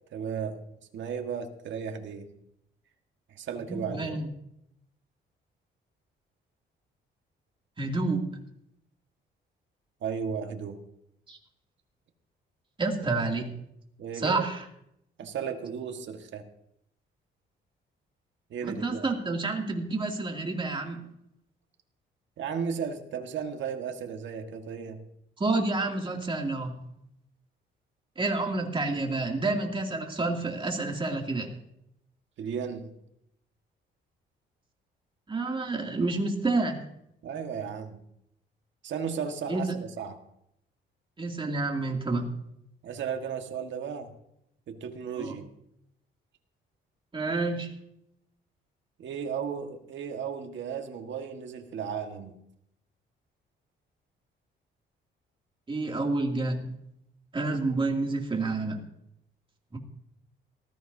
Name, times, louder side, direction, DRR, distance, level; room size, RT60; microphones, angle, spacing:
voice 1, 0.1-0.7 0.9-2.3 3.3-4.2 10.0-10.8 14.0-14.5 15.2-16.4 18.5-19.1 22.4-25.1 32.4-33.0 37.2-38.0 38.8-40.2 42.8-44.1 44.7-45.5 49.0-52.4, right 7 dB, 70° right, 4 dB, 1.6 m, -35 dB
voice 2, 3.7-4.3 7.8-8.4 11.3-11.4 12.8-13.6 14.1-14.6 18.6-21.0 25.4-26.8 28.2-31.5 35.3-36.9 39.5-39.6 41.2-42.3 45.2-45.4 47.1-47.8 55.7-56.7 57.3-58.8 59.7-59.8, right 3 dB, 25° right, 1 dB, 2.6 m, -29 dB
19.0 x 14.0 x 2.8 m, 0.76 s
cardioid pair, 90°, 20 cm